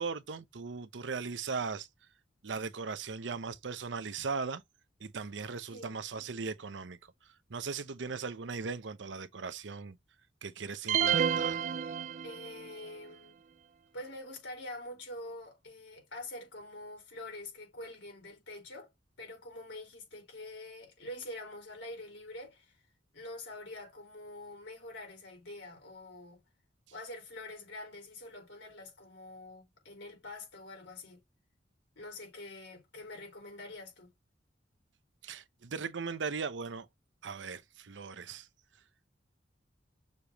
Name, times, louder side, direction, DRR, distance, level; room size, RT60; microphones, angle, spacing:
voice 1, 0.0-1.9 2.4-4.6 5.0-7.0 7.5-10.0 10.4-11.6 35.2-36.9 37.2-38.5, right 5 dB, 85° right, 0.7 m, -38 dB
sound 1, 10.9-12.7, right 8 dB, 45° right, 0.4 m, -30 dB
voice 2, 12.2-13.4 13.9-18.9 19.2-22.8 23.1-26.4 26.9-31.2 31.9-34.1, left 2 dB, 80° left, 4.4 m, -46 dB
6.7 x 4.9 x 2.9 m
head